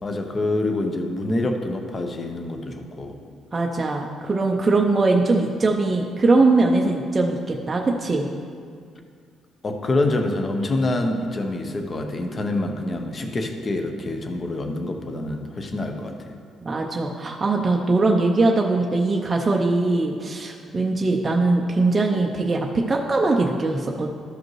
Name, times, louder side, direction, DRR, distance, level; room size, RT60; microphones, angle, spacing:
voice 1, 0.0-3.2 9.6-16.3, left 2 dB, 25° left, 4 dB, 0.7 m, -26 dB
voice 2, 3.5-8.3 16.6-24.1, right 3 dB, 20° right, 0 dB, 0.5 m, -21 dB
13.0 x 5.1 x 3.1 m, 2.2 s
cardioid pair, 150°, 0 cm